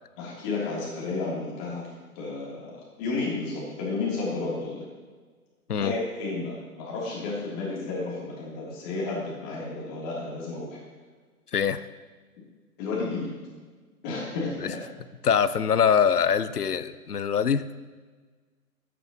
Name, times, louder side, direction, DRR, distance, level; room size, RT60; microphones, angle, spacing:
voice 1, 0.2-1.9 2.2-4.9 5.8-10.8 12.8-13.3 14.0-14.8, left 3 dB, 30° left, -5 dB, 3.4 m, -32 dB
voice 2, 15.2-17.7, left 7 dB, 85° left, 15 dB, 0.6 m, -23 dB
12.0 x 9.3 x 3.1 m, 1.4 s
figure-of-eight pair, 125°, 45 cm